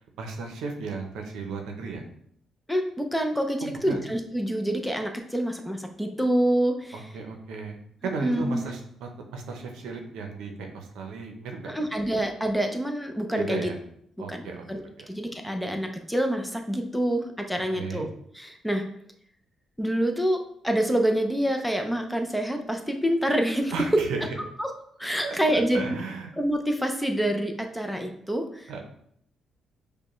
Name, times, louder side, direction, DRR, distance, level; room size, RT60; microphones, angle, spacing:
voice 1, 0.2-2.0 3.6-4.0 6.9-11.7 13.4-13.8 14.2-14.6 17.7-18.1 23.7-24.3 25.2-26.3 28.7-28.8, right 4 dB, 85° right, 3 dB, 0.6 m, -35 dB
voice 2, 2.7-7.0 8.2-8.6 11.6-13.7 14.3-14.4 14.7-14.8 15.1-18.1 18.3-18.8 19.8-23.7 24.6-24.7 25.0-26.0 26.4-28.8, right 1 dB, 5° left, 4 dB, 0.5 m, -27 dB
5.1 x 2.2 x 3.0 m, 0.68 s
cardioid pair, 90°, 0 cm